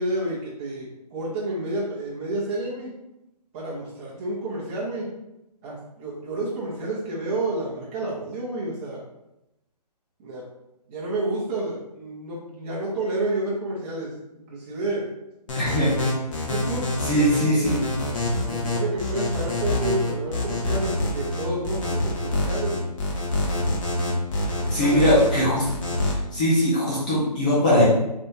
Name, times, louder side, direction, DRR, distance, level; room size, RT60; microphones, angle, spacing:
voice 1, 0.0-2.9 3.5-5.1 5.6-9.0 10.2-10.4 10.9-14.1 14.5-15.1 15.9-16.2 16.4-17.9 18.4-22.9 24.8-25.3, right 2 dB, 20° right, -6 dB, 1.0 m, -30 dB
sound 1, 15.5-26.1, left 2 dB, 50° left, 1.2 m, -26 dB
voice 2, 15.6-15.9 17.0-17.9 24.7-25.6 26.3-27.8, equal, 10° left, -7 dB, 0.4 m, -20 dB
3.4 x 3.4 x 2.8 m, 0.90 s
hypercardioid pair, 155°, 21 cm